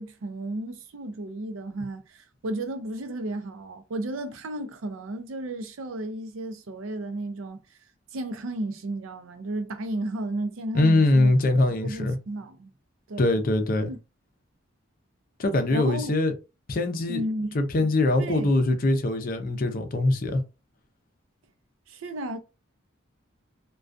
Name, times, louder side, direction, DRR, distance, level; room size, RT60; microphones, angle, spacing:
voice 1, 0.0-7.6 8.1-12.7 13.1-13.4 13.8-14.0 15.7-16.1 17.1-17.6 18.2-18.5 21.9-22.4, right 1 dB, 85° right, 0.5 m, -33 dB
voice 2, 10.7-12.2 13.2-13.9 15.4-16.3 16.7-17.2 17.5-20.4, left 2 dB, 45° left, 0.5 m, -22 dB
2.3 x 2.3 x 2.5 m
head